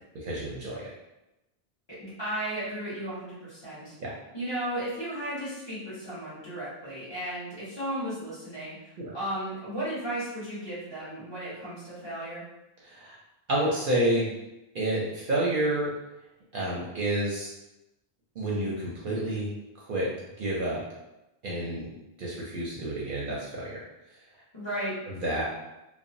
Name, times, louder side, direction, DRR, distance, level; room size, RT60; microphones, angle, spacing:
voice 1, 0.2-0.9 4.0-4.1 9.0-9.1 12.8-13.2 13.5-14.3 14.7-15.9 16.5-17.5 18.4-19.5 19.8-20.1 20.4-20.8 21.4-21.9 22.2-23.8 25.1-25.4, right 1 dB, 60° right, -5 dB, 0.7 m, -29 dB
voice 2, 2.0-3.9 4.3-8.7 9.1-12.4 24.5-24.9, right 1 dB, 25° left, -12 dB, 1.2 m, -34 dB
2.8 x 2.1 x 2.5 m, 0.94 s
omnidirectional pair, 1.1 m